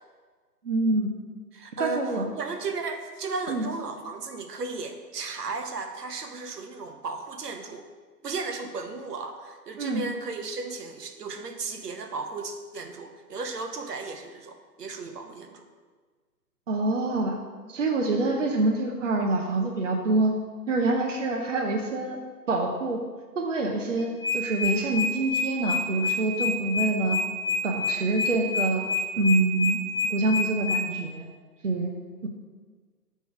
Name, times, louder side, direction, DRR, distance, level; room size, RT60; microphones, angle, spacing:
voice 1, 0.6-1.1 1.8-2.3 3.5-3.7 9.8-10.0 16.7-17.4 17.7-20.3 20.7-22.2 22.5-23.0 23.4-27.2 27.6-28.8 29.2-29.8 30.1-31.3 31.6-31.9 32.2-32.3, right 2 dB, 50° right, 1 dB, 0.7 m, -26 dB
voice 2, 1.5-2.0 2.3-7.8 8.2-15.6 18.3-18.4, right 3 dB, 70° right, 5 dB, 1.0 m, -35 dB
sound 1, 24.0-30.8, left 5 dB, 5° left, 0.7 m, -27 dB
6.3 x 3.4 x 5.7 m, 1.4 s
hypercardioid pair, 165°, 49 cm